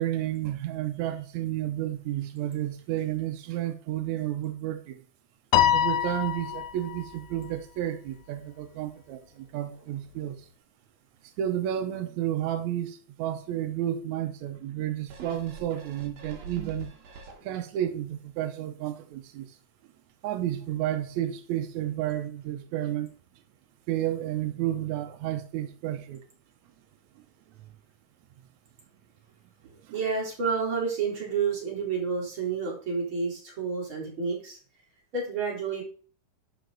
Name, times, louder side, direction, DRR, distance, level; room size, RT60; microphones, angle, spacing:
voice 1, 0.0-5.0 5.7-10.4 11.4-16.9 17.4-19.5 20.2-23.1 23.9-26.2, right 12 dB, 80° right, 1.7 m, -31 dB
Piano, 5.5-7.1, left 11 dB, 80° left, 1.7 m, -24 dB
sound 1, 15.1-17.8 18.3-18.4, right 3 dB, 55° right, 2.7 m, -43 dB
voice 2, 29.9-34.6 35.1-35.8, right 5 dB, 35° right, 4.1 m, -29 dB
11.5 x 5.2 x 3.9 m
omnidirectional pair, 4.1 m